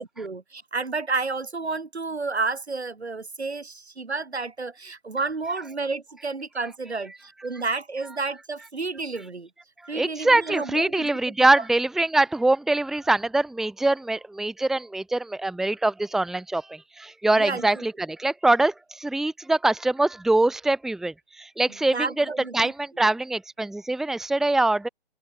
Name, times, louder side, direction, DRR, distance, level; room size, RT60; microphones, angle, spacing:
voice 1, 0.0-9.5 9.9-11.1 17.4-17.8 21.9-22.7 23.0-23.1, right 3 dB, 85° right, 6.9 m, -31 dB
voice 2, 9.9-22.3 22.5-24.9, right 2 dB, ahead, 1.6 m, -23 dB
open air
figure-of-eight pair, 150°, 32 cm